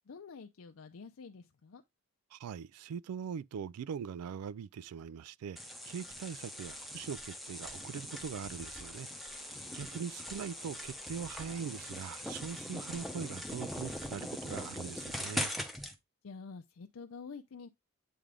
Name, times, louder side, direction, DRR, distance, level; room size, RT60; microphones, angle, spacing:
voice 1, 0.1-1.8 16.2-17.7, left 5 dB, 65° left, 0.5 m, -48 dB
voice 2, 2.3-5.6 5.9-15.5, right 7 dB, 85° right, 0.3 m, -42 dB
sound 1, 5.6-15.9, left 1 dB, ahead, 0.7 m, -41 dB
8.5 x 3.4 x 3.6 m
head